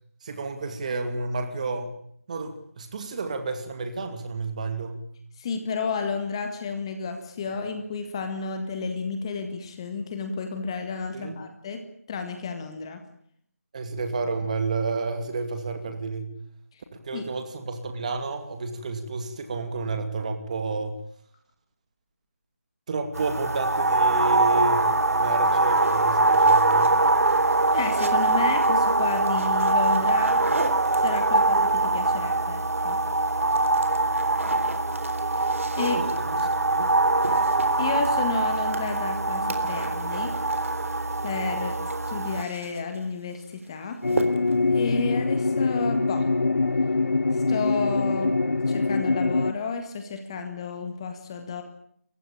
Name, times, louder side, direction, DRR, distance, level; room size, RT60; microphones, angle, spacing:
voice 1, 0.2-1.9 2.3-5.0 11.1-11.4 13.7-16.3 16.9-21.0 22.9-27.0 35.8-36.9, right 3 dB, 30° right, 7 dB, 2.5 m, -31 dB
voice 2, 5.4-13.0 16.7-16.8 17.1-17.2 27.7-30.4 31.0-33.0 35.8-36.0 37.8-40.4 41.2-44.0 44.7-46.3 47.3-48.4 48.7-51.6, left 4 dB, 20° left, 6 dB, 1.8 m, -31 dB
sound 1, 23.1-42.4, right 2 dB, 80° right, 1.3 m, -23 dB
sound 2, 25.5-31.5 32.7-33.1 33.4-41.3 41.6-43.1 43.4-43.7 44.1-44.7, right 2 dB, 60° right, 3.6 m, -38 dB
sound 3, 44.0-49.5, left 3 dB, 65° left, 0.9 m, -24 dB
29.0 x 15.5 x 8.8 m, 0.67 s
figure-of-eight pair, 165°, 8 cm